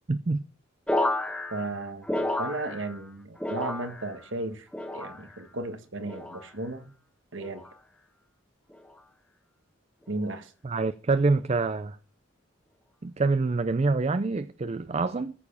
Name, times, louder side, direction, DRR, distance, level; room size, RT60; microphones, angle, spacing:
voice 1, 0.1-0.4 10.6-12.0 13.0-15.3, right 3 dB, 35° right, 0.5 m, -26 dB
sound 1, 0.9-3.1 3.4-4.2 4.7-5.4 6.0-6.5 7.4-7.8 8.7-9.0, left 1 dB, 5° left, 1.2 m, -32 dB
voice 2, 1.5-4.7 4.9-6.9 7.3-7.6 10.1-10.5, right 2 dB, 70° right, 1.5 m, -35 dB
14.5 x 7.0 x 5.4 m
head